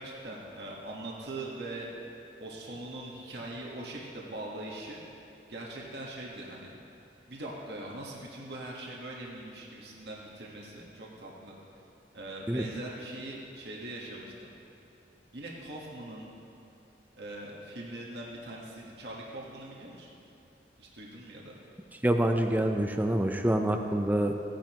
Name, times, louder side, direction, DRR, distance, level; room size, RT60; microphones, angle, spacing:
voice 1, 0.0-1.9 2.4-5.0 5.5-6.7 7.3-11.6 12.1-14.5 15.3-16.3 17.2-20.1 20.8-21.5, right 1 dB, 70° right, -3 dB, 1.5 m, -41 dB
voice 2, 22.0-24.3, right 1 dB, 10° right, 5 dB, 0.5 m, -26 dB
16.0 x 10.5 x 3.0 m, 2.9 s
head